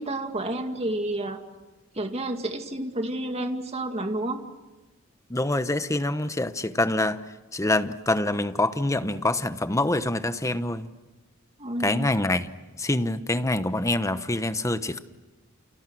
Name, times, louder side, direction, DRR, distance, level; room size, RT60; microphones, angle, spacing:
voice 1, 0.0-1.4 1.9-4.4 11.6-12.1, right 1 dB, 30° right, 2.2 m, -30 dB
voice 2, 5.3-7.2 7.5-10.9 11.8-12.5 12.8-15.0, left 2 dB, 15° left, 1.0 m, -25 dB
29.5 x 29.0 x 6.3 m
head